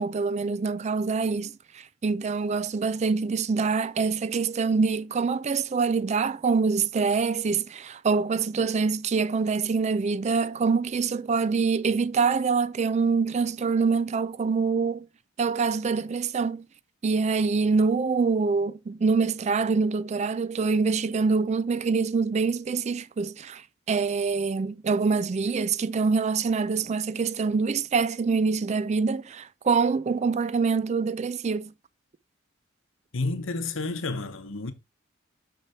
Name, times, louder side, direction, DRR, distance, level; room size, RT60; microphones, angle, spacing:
voice 1, 0.0-15.1 15.4-16.7 17.0-31.7, right 4 dB, 35° right, 0.4 m, -25 dB
voice 2, 33.1-34.7, left 3 dB, 70° left, 1.0 m, -30 dB
6.6 x 6.0 x 4.3 m
head